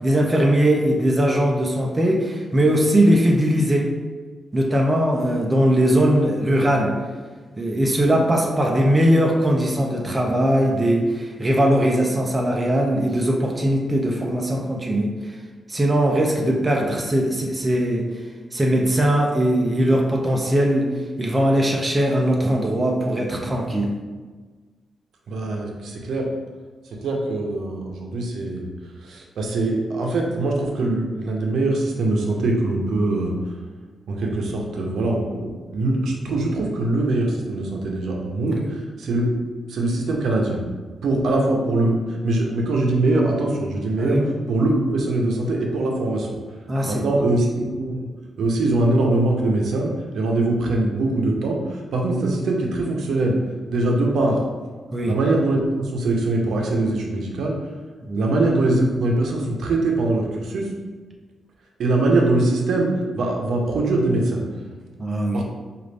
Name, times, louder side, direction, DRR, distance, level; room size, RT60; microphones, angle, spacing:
voice 1, 0.0-3.9 4.5-7.0 7.6-15.1 15.7-18.1 18.5-20.9 21.2-23.9 38.5-38.7 44.0-44.3 46.7-47.1 54.9-55.1 58.1-58.4 65.0-65.4, right 1 dB, 15° right, -1 dB, 0.4 m, -20 dB
voice 2, 25.3-26.3 27.0-28.7 29.0-33.3 34.1-39.3 39.7-40.6 41.0-42.0 42.2-44.2 44.5-46.3 46.8-48.1 48.4-49.9 50.1-51.6 51.9-53.4 53.7-54.4 55.0-57.6 58.2-60.7 61.8-64.4 65.3-65.4, right 2 dB, 75° right, 0 dB, 0.6 m, -22 dB
5.0 x 2.4 x 3.2 m, 1.4 s
wide cardioid pair, 175°, 0 cm